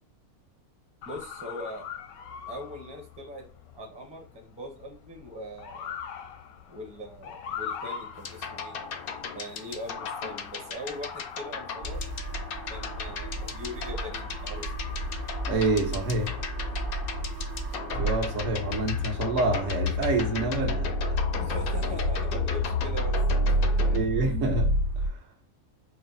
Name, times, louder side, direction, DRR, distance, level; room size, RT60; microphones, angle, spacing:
Motor vehicle (road) / Siren, 1.0-16.6, left 7 dB, 85° left, 1.1 m, -43 dB
voice 1, 1.0-1.9 2.5-3.4 3.7-5.9 6.7-8.8 9.3-12.0 12.7-14.7 21.4-23.2 23.5-24.1, equal, 10° right, 0.5 m, -41 dB
sound 1, 8.2-24.0, left 6 dB, 70° left, 0.5 m, -37 dB
sound 2, 11.8-25.1, equal, 80° right, 1.4 m, -30 dB
voice 2, 15.4-16.3 17.9-20.9 21.3-21.5 23.9-25.2, right 3 dB, 65° right, 1.2 m, -28 dB
4.8 x 2.0 x 4.0 m
omnidirectional pair, 1.5 m